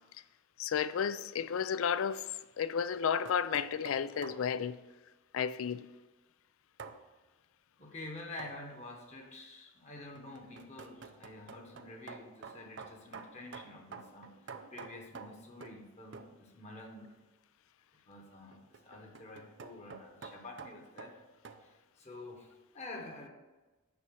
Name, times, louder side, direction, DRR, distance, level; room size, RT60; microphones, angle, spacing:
voice 1, 0.6-2.3 2.6-4.8 5.3-5.9, left 7 dB, 75° left, 0.4 m, -32 dB
sound 1, 2.9-4.5 6.8-7.0 8.4-8.7 10.0-15.9 16.1-16.4 18.5-21.6, right 5 dB, 55° right, 0.5 m, -49 dB
voice 2, 7.8-14.4 14.7-17.2 18.1-21.1 21.6-23.3, left 2 dB, 30° left, 1.0 m, -48 dB
6.9 x 5.6 x 6.3 m
head